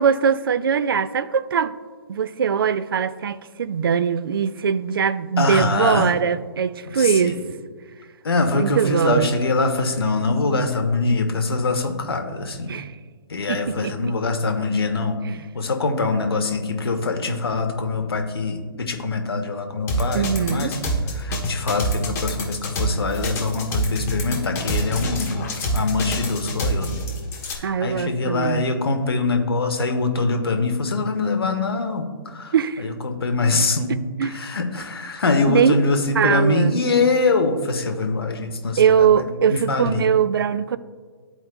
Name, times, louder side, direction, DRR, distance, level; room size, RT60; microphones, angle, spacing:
voice 1, 0.0-1.7 2.1-7.4 8.5-9.3 12.7-12.9 13.5-14.0 15.3-15.4 20.1-20.7 27.6-28.6 32.5-32.8 33.9-34.4 35.5-35.8 36.2-36.8 38.8-40.8, right 7 dB, 70° right, 0.4 m, -21 dB
voice 2, 5.4-6.1 6.9-7.4 8.2-12.7 13.3-15.2 15.5-20.8 21.1-25.5 25.7-27.0 27.5-40.1, left 3 dB, 75° left, 0.9 m, -23 dB
sound 1, 19.9-27.6, equal, 20° left, 1.0 m, -25 dB
12.5 x 4.4 x 2.2 m
hypercardioid pair, 135°, 13 cm